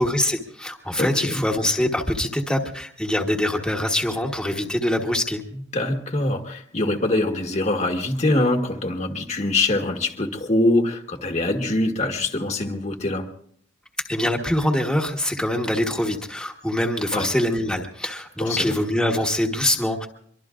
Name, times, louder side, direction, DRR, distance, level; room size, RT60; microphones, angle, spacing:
voice 1, 0.0-5.4 14.1-20.1, left 1 dB, 5° left, 0 dB, 1.2 m, -24 dB
voice 2, 1.0-1.4 5.5-13.3 17.1-17.3 18.4-18.7, left 2 dB, 40° left, 3 dB, 1.3 m, -24 dB
24.5 x 23.0 x 2.5 m, 0.63 s
head